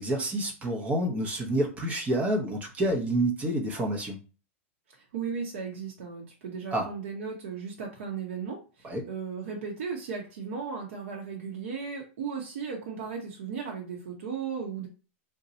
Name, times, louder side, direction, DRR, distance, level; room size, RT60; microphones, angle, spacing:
voice 1, 0.0-4.2 6.7-6.9 8.8-9.0, right 1 dB, 20° right, 2 dB, 0.7 m, -28 dB
voice 2, 4.9-14.9, right 6 dB, 70° right, -1 dB, 0.8 m, -36 dB
2.7 x 2.2 x 3.9 m, 0.34 s
supercardioid pair, 140°, 7 cm